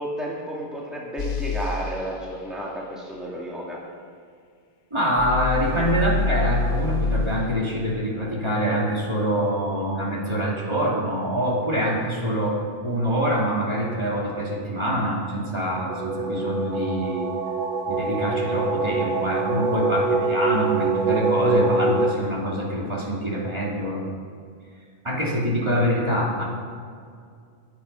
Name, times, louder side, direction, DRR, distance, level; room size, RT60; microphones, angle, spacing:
voice 1, 0.0-3.8, equal, ahead, -4 dB, 2.0 m, -32 dB
sound 1, 1.2-1.7 5.2-7.3, left 4 dB, 55° left, 0.8 m, -25 dB
voice 2, 4.9-17.3 17.9-24.1 25.0-26.4, equal, 30° right, -4 dB, 2.6 m, -25 dB
sound 2, 15.9-22.1, right 3 dB, 60° right, 0.8 m, -24 dB
15.0 x 10.0 x 5.5 m, 2.2 s
omnidirectional pair, 1.0 m